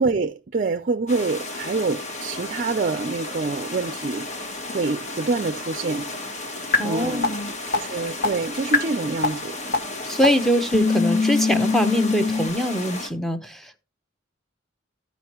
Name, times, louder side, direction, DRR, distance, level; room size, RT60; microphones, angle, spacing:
voice 1, 0.0-6.1 6.8-7.3 7.7-9.6, right 3 dB, 40° right, 0.5 m, -26 dB
sound 1, 1.1-13.1, left 2 dB, 35° left, 1.5 m, -34 dB
sound 2, 6.7-6.8 7.2-7.3 7.7-7.8 8.2-8.3 8.7-8.8 9.2-9.3 9.7-9.8 10.2-10.3 10.7-12.5, left 4 dB, 55° left, 1.6 m, -20 dB
voice 2, 6.8-7.5 7.8-7.9 10.1-13.8, equal, ahead, 0.9 m, -23 dB
14.5 x 5.2 x 3.0 m
head